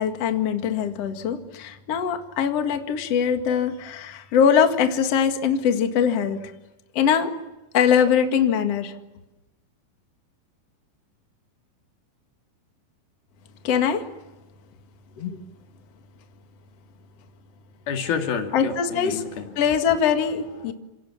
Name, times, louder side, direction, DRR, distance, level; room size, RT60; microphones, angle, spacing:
voice 1, 0.0-6.5 6.9-7.3 7.7-8.9 13.6-14.0 15.2-15.4 18.5-19.2 19.6-20.7, left 7 dB, 50° left, 6 dB, 2.6 m, -22 dB
voice 2, 17.9-20.7, left 6 dB, 85° left, 5 dB, 4.4 m, -31 dB
29.5 x 26.5 x 7.3 m, 1.0 s
omnidirectional pair, 4.2 m